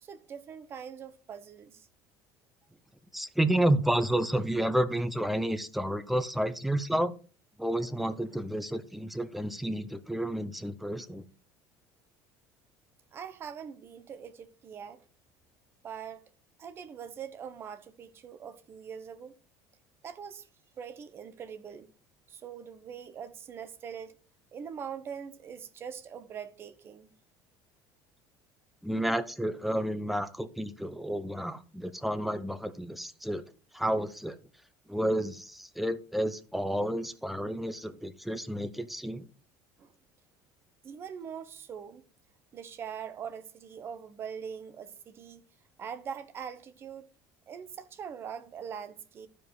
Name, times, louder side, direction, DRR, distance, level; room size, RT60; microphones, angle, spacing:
voice 1, 0.0-1.9 13.1-15.0 15.8-16.2 16.6-19.3 20.0-20.5 20.8-21.9 22.3-24.2 24.5-27.1 39.8-39.9 40.8-42.0 42.5-45.4 45.8-47.1 47.5-49.3, right 7 dB, 30° right, 0.9 m, -42 dB
voice 2, 3.1-7.1 7.6-11.2 28.8-33.4 33.7-34.4 34.9-39.3, right 1 dB, ahead, 0.7 m, -30 dB
12.0 x 5.0 x 4.7 m
cardioid pair, 160°, 8 cm